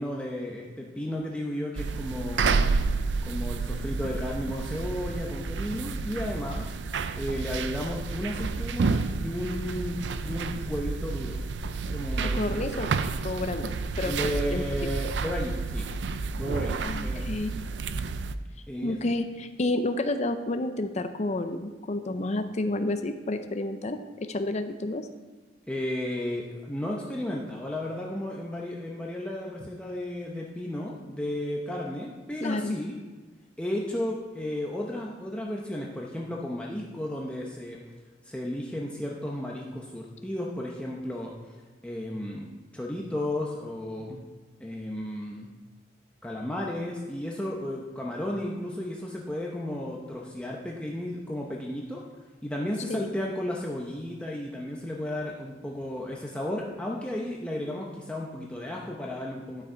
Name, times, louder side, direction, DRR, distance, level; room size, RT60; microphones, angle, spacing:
voice 1, 0.0-2.6 3.2-6.7 7.1-11.4 11.9-12.9 14.0-15.9 16.3-17.3 18.7-19.0 25.7-33.0 33.6-37.8 38.2-41.3 41.8-42.5 42.7-44.3 44.6-45.5 46.2-52.0 52.4-59.6, left 1 dB, 5° left, -3 dB, 0.7 m, -33 dB
sound 1, 1.8-18.4, right 4 dB, 75° right, 0.4 m, -30 dB
voice 2, 12.2-12.9 13.2-13.7 14.0-14.6 16.8-17.5 18.8-24.0 24.3-25.0 32.4-32.8 52.9-53.1, left 2 dB, 40° left, 8 dB, 0.5 m, -30 dB
11.5 x 6.3 x 4.4 m, 1.4 s
head